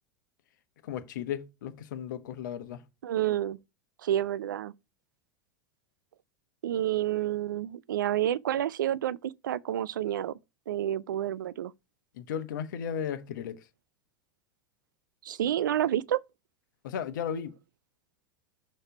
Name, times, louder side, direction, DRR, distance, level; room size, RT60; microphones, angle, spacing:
voice 1, 0.8-2.8 12.1-13.7 16.8-17.5, left 8 dB, 75° left, 1.0 m, -35 dB
voice 2, 3.0-3.6 4.0-4.7 6.6-10.3 10.7-11.7 15.2-16.2, right 12 dB, 85° right, 0.4 m, -29 dB
6.6 x 3.1 x 5.3 m
hypercardioid pair, 90°, 10 cm